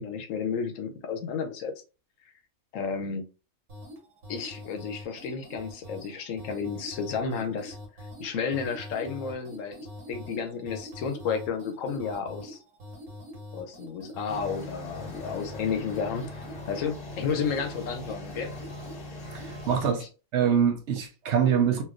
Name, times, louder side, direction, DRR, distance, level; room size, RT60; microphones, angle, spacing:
voice 1, 0.0-1.7 2.7-3.2 4.3-7.8 8.2-9.8 10.1-12.6 13.5-16.2 16.7-18.5 19.7-20.1, left 6 dB, 75° left, 0.9 m, -32 dB
sound 1, 3.7-19.9, equal, 85° right, 1.7 m, -44 dB
sound 2, 14.3-19.9, left 2 dB, 35° left, 0.7 m, -41 dB
voice 2, 19.3-20.0 20.3-21.8, right 8 dB, 60° right, 0.9 m, -24 dB
3.1 x 2.9 x 2.4 m
omnidirectional pair, 1.5 m